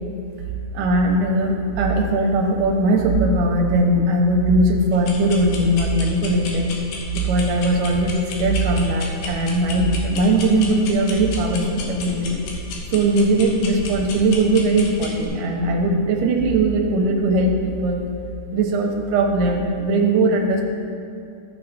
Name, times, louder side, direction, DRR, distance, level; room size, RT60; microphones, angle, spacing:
voice 1, 0.7-6.7 7.2-12.4 12.9-18.1 18.5-20.6, right 2 dB, 75° right, 1 dB, 2.4 m, -19 dB
sound 1, 4.9-15.3, left 3 dB, 85° left, 2.9 m, -34 dB
15.0 x 5.5 x 4.3 m, 2.6 s
omnidirectional pair, 4.1 m